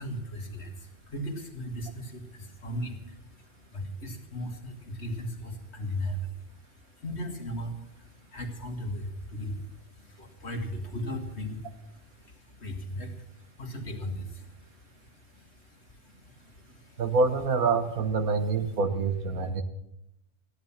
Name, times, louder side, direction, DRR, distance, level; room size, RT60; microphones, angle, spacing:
voice 1, 0.0-17.0, equal, 50° left, 3 dB, 2.2 m, -38 dB
voice 2, 17.0-19.6, right 4 dB, 85° right, 9 dB, 1.7 m, -26 dB
15.0 x 11.0 x 7.2 m, 0.81 s
omnidirectional pair, 1.5 m